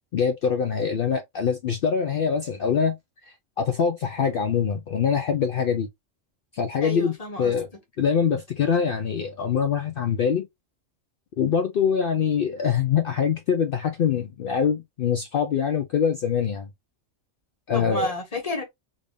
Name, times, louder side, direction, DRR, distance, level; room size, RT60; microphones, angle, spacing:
voice 1, 0.1-3.0 3.6-5.9 6.5-7.1 7.4-7.7 8.0-10.5 11.4-16.7 17.7-18.1, left 7 dB, 60° left, 0.6 m, -24 dB
voice 2, 6.8-7.8 17.7-18.6, left 1 dB, 30° left, 1.1 m, -31 dB
3.8 x 2.5 x 3.3 m
omnidirectional pair, 1.3 m